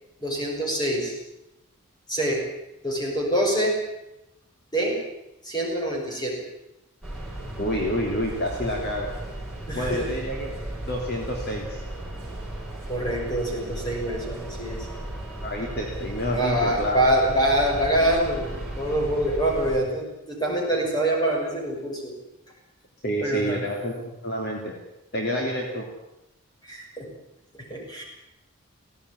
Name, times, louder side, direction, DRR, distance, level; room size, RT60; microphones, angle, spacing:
voice 1, 0.2-1.1 2.1-2.4 2.8-3.8 4.7-4.9 5.4-6.3 9.7-10.0 12.9-14.9 16.3-22.1 23.2-23.6 26.6-27.1 27.5-28.0, right 1 dB, 20° left, -1 dB, 6.4 m, -25 dB
sound 1, 7.0-19.8, right 1 dB, ahead, 6.2 m, -35 dB
voice 2, 7.6-9.1 9.7-10.5 10.9-11.8 15.4-17.0 23.0-24.7 25.1-25.8, equal, 45° left, 0 dB, 3.2 m, -28 dB
18.5 x 17.5 x 9.9 m, 0.92 s
head